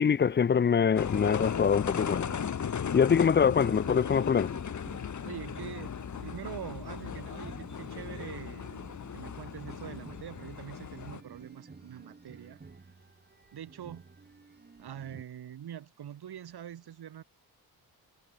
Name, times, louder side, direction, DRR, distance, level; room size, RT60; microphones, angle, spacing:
voice 1, 0.0-2.3 2.9-4.5, left 7 dB, 25° left, 0.6 m, -24 dB
sound 1, 1.0-11.2, left 7 dB, 45° left, 2.4 m, -36 dB
sound 2, 1.3-15.2, right 4 dB, 25° right, 3.0 m, -52 dB
voice 2, 5.2-8.8 9.1-12.6 13.5-14.0 14.8-17.2, right 10 dB, 70° right, 3.7 m, -44 dB
wide cardioid pair, 140°, 39 cm